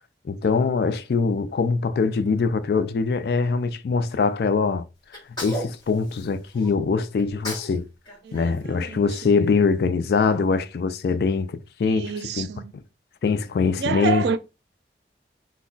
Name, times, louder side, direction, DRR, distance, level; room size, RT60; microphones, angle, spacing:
voice 1, 0.2-4.8 5.4-7.9 8.3-12.5 13.2-14.3, left 4 dB, 60° left, 0.3 m, -23 dB
Sneeze, 5.1-6.7 7.2-7.8 8.0-9.5, equal, 25° left, 1.1 m, -36 dB
voice 2, 8.2-9.3 11.8-12.7 13.8-14.4, right 6 dB, 70° right, 0.3 m, -29 dB
2.2 x 2.2 x 3.7 m
head